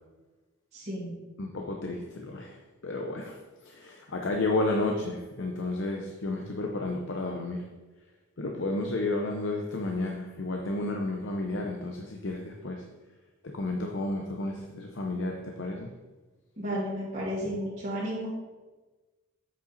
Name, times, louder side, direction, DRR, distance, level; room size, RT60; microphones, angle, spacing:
voice 1, 0.7-1.1 16.6-18.3, equal, 35° right, -11 dB, 2.3 m, -33 dB
voice 2, 1.4-2.6 2.8-3.4 3.6-7.6 8.4-12.8 13.4-15.9, left 2 dB, 60° left, 1 dB, 0.7 m, -32 dB
7.9 x 5.2 x 4.1 m, 1.2 s
head